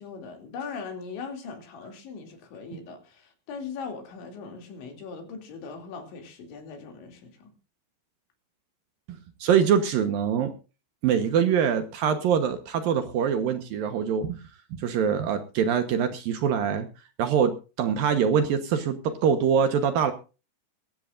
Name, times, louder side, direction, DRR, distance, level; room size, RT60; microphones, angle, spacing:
voice 1, 0.0-7.5, left 5 dB, 85° left, 5.2 m, -40 dB
voice 2, 9.4-10.5 11.0-14.4 14.7-16.9 17.2-20.1, right 7 dB, 65° right, 2.5 m, -24 dB
23.0 x 13.5 x 2.6 m
omnidirectional pair, 5.1 m